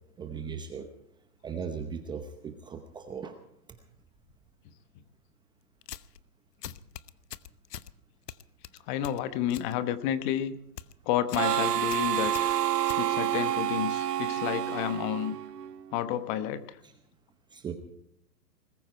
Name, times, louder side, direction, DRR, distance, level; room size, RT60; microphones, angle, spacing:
voice 1, 0.2-0.9 1.4-3.4 16.8-16.9 17.5-17.7, right 6 dB, 10° right, 6 dB, 0.8 m, -38 dB
sound 1, 5.8-6.2 6.6-7.9 8.3-9.7 10.1-10.4 10.6-10.9 11.3-11.5 11.8-13.5, left 11 dB, 70° left, 1.0 m, -43 dB
voice 2, 8.9-10.5 11.1-12.6 12.9-15.4 15.9-16.8, left 11 dB, 30° left, 13 dB, 1.1 m, -30 dB
Harmonica, 11.3-15.8, right 12 dB, 70° right, 1.1 m, -29 dB
21.0 x 14.5 x 4.5 m, 0.72 s
hypercardioid pair, 145°, 49 cm